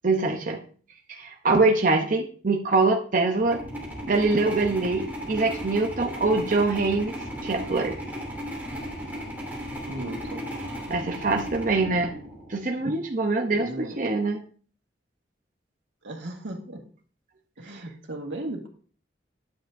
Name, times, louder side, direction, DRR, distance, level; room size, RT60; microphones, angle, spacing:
voice 1, 0.0-0.6 1.1-3.6 4.1-7.2 7.4-8.0 10.9-12.1 12.5-13.7 14.0-14.4, right 3 dB, 45° right, 2 dB, 0.7 m, -24 dB
sound 1, 3.4-12.7, equal, 10° right, 2.7 m, -36 dB
voice 2, 9.8-10.5 13.5-14.1 16.0-16.8 17.6-18.7, right 1 dB, 85° right, 2 dB, 1.7 m, -36 dB
9.6 x 7.7 x 2.6 m, 0.43 s
head